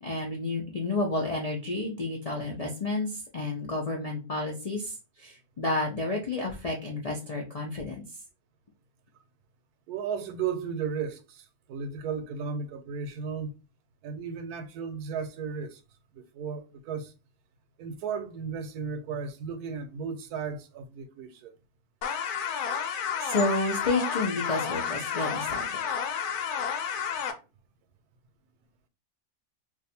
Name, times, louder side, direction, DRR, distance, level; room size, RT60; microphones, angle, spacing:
voice 1, 0.0-8.0 23.2-25.8, left 2 dB, 55° left, 0.4 m, -30 dB
voice 2, 9.9-13.5 14.0-15.8 16.1-17.1 17.8-21.6, right 6 dB, 80° right, 1.1 m, -35 dB
sound 1, 22.0-27.3, left 7 dB, 85° left, 1.1 m, -31 dB
2.6 x 2.5 x 4.2 m
omnidirectional pair, 1.6 m